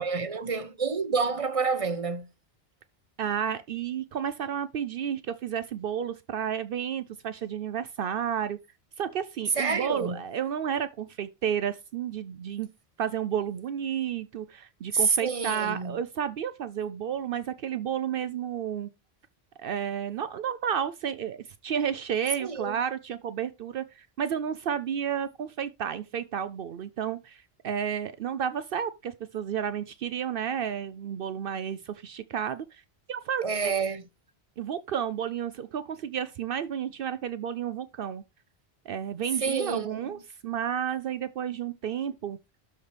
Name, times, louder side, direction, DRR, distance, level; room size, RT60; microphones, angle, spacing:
voice 1, 0.0-2.3 9.6-10.2 14.9-16.0 22.4-22.8 33.4-34.1 39.4-40.2, right 5 dB, 35° right, 0.8 m, -28 dB
voice 2, 3.2-8.6 9.0-12.7 13.0-18.9 19.6-32.8 33.1-33.7 34.6-38.2 38.9-42.4, right 8 dB, 65° right, 0.7 m, -31 dB
12.5 x 4.2 x 3.3 m
omnidirectional pair, 1.1 m